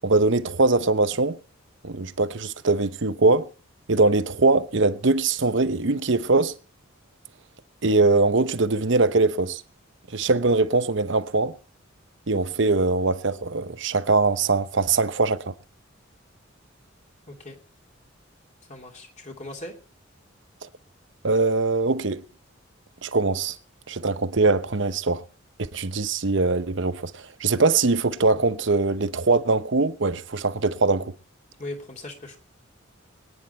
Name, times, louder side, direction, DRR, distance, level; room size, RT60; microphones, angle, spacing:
voice 1, 0.0-1.4 1.8-3.5 3.9-6.5 7.8-9.6 10.1-11.6 12.3-15.5 21.2-22.2 23.0-23.6 23.9-25.2 25.7-31.1, right 3 dB, 60° right, 0.9 m, -22 dB
voice 2, 17.3-17.6 18.7-19.7 31.6-32.4, left 1 dB, 35° left, 2.9 m, -38 dB
22.5 x 10.0 x 4.3 m
head